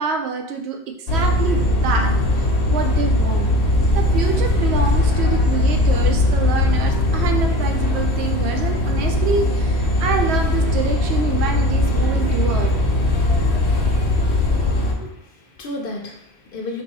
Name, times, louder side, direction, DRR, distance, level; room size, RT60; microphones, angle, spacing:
voice 1, 0.0-3.5 3.9-12.7, right 5 dB, 80° right, 4 dB, 0.8 m, -26 dB
sound 1, 1.1-14.9, left 1 dB, 85° left, 1.0 m, -19 dB
voice 2, 14.9-16.8, left 2 dB, 60° left, 2 dB, 0.7 m, -33 dB
3.0 x 2.6 x 4.0 m, 0.73 s
omnidirectional pair, 1.1 m